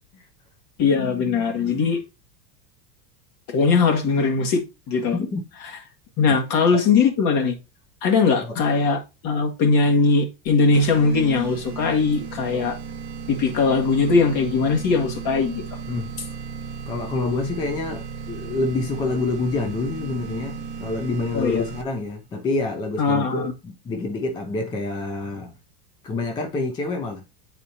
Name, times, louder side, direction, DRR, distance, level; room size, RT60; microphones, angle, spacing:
voice 1, 0.8-2.0 3.5-5.2 6.2-7.6 8.0-9.0 9.2-12.7 13.3-15.6 21.3-21.6 23.0-23.5, left 4 dB, 45° left, 1.7 m, -20 dB
voice 2, 5.1-5.5 6.3-6.4 6.7-6.8 8.4-8.6 15.9-16.1 16.9-25.5 26.0-27.3, left 3 dB, 10° left, 0.3 m, -27 dB
sound 1, 10.7-22.1, right 5 dB, 20° right, 0.8 m, -35 dB
8.6 x 4.2 x 2.7 m
supercardioid pair, 135°, 47 cm